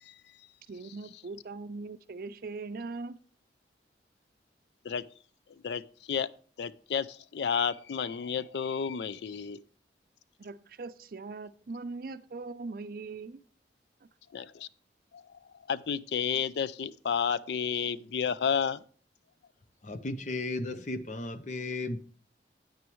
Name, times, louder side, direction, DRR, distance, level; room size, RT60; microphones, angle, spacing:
voice 1, 0.7-3.2 10.4-13.4, right 3 dB, 55° right, 0.5 m, -40 dB
voice 2, 5.6-6.3 6.6-9.6 14.3-14.7 15.1-15.2 15.7-18.8, left 7 dB, 75° left, 0.4 m, -31 dB
voice 3, 19.8-22.0, left 2 dB, 45° left, 0.7 m, -35 dB
9.3 x 8.8 x 3.1 m
head